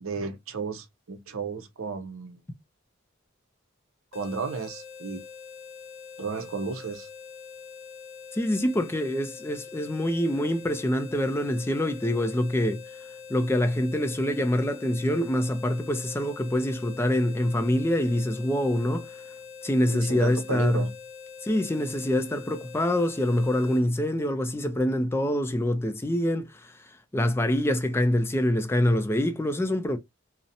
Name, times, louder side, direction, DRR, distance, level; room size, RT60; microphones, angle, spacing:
voice 1, 0.0-2.4 4.1-5.2 6.2-7.1 19.9-20.9, right 4 dB, 80° right, 0.6 m, -33 dB
sound 1, 4.1-23.8, left 6 dB, 65° left, 0.8 m, -44 dB
voice 2, 8.3-12.8 13.3-19.1 19.6-20.8 21.4-30.0, left 1 dB, 10° left, 0.3 m, -25 dB
2.7 x 2.0 x 2.5 m
head